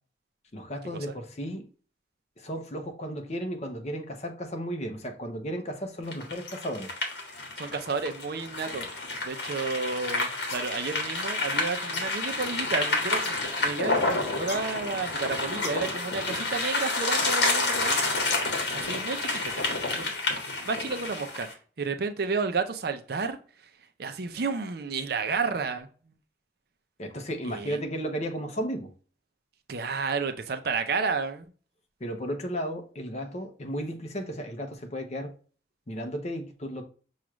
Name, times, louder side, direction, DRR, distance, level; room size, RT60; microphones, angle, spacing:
voice 1, 0.5-1.6 2.4-6.9 27.0-28.9 32.0-35.3 35.9-36.8, equal, 40° left, 0.8 m, -34 dB
sound 1, 6.1-21.5, left 3 dB, 60° left, 1.4 m, -29 dB
voice 2, 7.6-8.9 9.2-18.0 18.7-19.7 19.9-20.1 20.6-21.5 21.8-23.4 24.0-25.9 27.4-27.8 29.7-31.4, right 4 dB, 60° right, 0.6 m, -31 dB
6.1 x 2.4 x 3.0 m
head